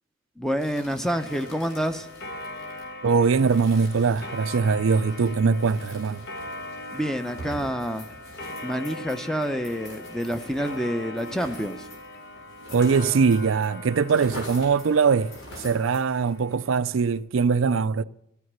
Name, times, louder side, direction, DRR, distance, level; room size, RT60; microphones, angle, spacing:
voice 1, 0.4-2.1 6.9-8.1 8.6-11.9, equal, 5° left, 0.7 m, -28 dB
sound 1, 0.6-13.7 13.9-16.3, left 1 dB, 75° left, 5.7 m, -45 dB
Clock, 1.1-17.2, left 1 dB, 55° left, 1.3 m, -40 dB
voice 2, 3.0-6.3 12.7-15.3 15.6-18.0, right 5 dB, 75° right, 0.5 m, -22 dB
13.5 x 9.3 x 8.1 m
head